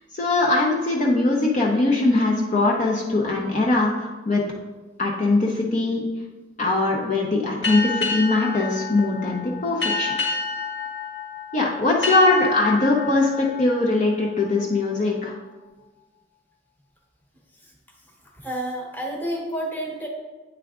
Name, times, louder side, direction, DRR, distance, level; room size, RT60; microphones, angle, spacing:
voice 1, 0.1-4.4 5.0-6.1 6.6-10.2 11.5-15.3, left 2 dB, 40° left, -2 dB, 0.7 m, -21 dB
sound 1, 7.6-14.9, left 4 dB, 80° left, 2.1 m, -29 dB
voice 2, 18.4-20.1, right 1 dB, 10° left, -1 dB, 1.1 m, -29 dB
8.9 x 3.5 x 3.6 m, 1.2 s
head